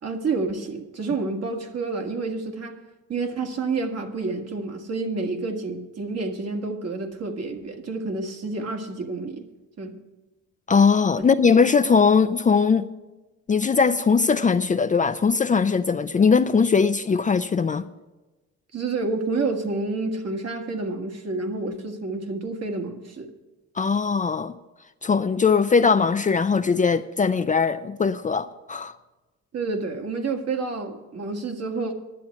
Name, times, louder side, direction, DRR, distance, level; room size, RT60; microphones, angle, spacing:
voice 1, 0.0-2.8 3.1-9.4 9.8-9.9 18.7-23.3 29.5-31.9, right 3 dB, 55° right, 1.7 m, -29 dB
voice 2, 10.7-12.9 13.5-17.8 23.8-24.5 25.0-29.0, left 5 dB, 25° left, 0.4 m, -20 dB
10.5 x 7.5 x 8.5 m
cardioid pair, 90°, 30 cm